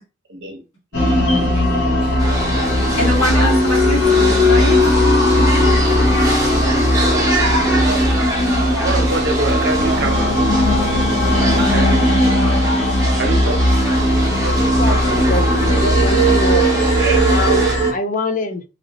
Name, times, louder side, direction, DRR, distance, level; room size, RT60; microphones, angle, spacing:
voice 1, 0.3-0.6 0.9-1.2 1.5-1.7 2.0-2.2 8.8-10.4 11.4-12.1 13.2-13.8 14.4-15.0, right 3 dB, 60° right, 0.8 m, -26 dB
sound 1, 0.9-17.9, left 1 dB, 60° left, 1.1 m, -16 dB
sound 2, 2.2-17.8, right 1 dB, 15° right, 0.9 m, -24 dB
voice 2, 3.0-4.8, left 1 dB, 75° left, 1.6 m, -22 dB
voice 3, 14.5-16.7 17.3-18.6, left 2 dB, 40° left, 0.5 m, -24 dB
2.9 x 2.5 x 2.9 m
head